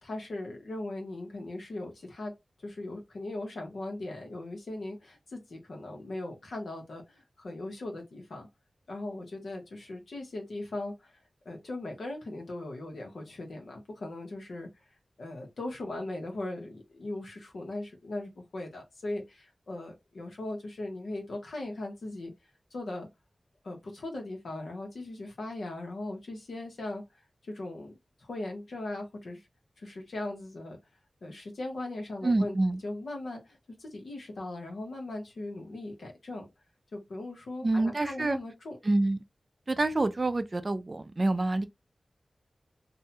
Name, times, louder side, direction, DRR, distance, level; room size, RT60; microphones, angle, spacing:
voice 1, 0.0-2.3 2.6-8.5 8.9-11.2 11.4-14.7 15.2-22.3 22.7-23.1 23.6-27.0 27.4-29.4 29.8-30.8 31.2-32.6 32.8-36.5 36.9-38.8, left 2 dB, 85° left, 0.9 m, -39 dB
voice 2, 32.2-32.8 37.6-38.4 38.8-39.2 39.7-41.7, right 2 dB, 45° right, 0.4 m, -27 dB
2.6 x 2.2 x 2.8 m
cardioid pair, 50°, 0 cm